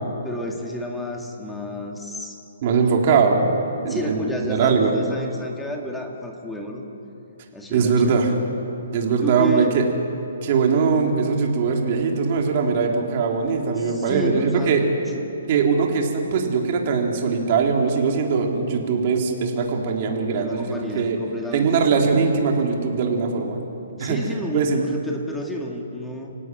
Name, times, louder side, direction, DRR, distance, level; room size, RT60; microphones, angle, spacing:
voice 1, 0.2-2.4 3.9-6.8 7.5-8.2 9.2-9.7 13.8-15.2 20.4-22.6 24.0-26.4, equal, 5° left, 1 dB, 2.3 m, -31 dB
voice 2, 2.6-3.4 3.8-4.9 7.7-8.3 8.9-9.8 10.4-14.8 15.5-21.2 21.5-23.6 24.0-24.2 24.5-24.8, right 5 dB, 35° right, 1 dB, 3.6 m, -21 dB
29.5 x 17.5 x 9.3 m, 3.0 s
hypercardioid pair, 165°, 0 cm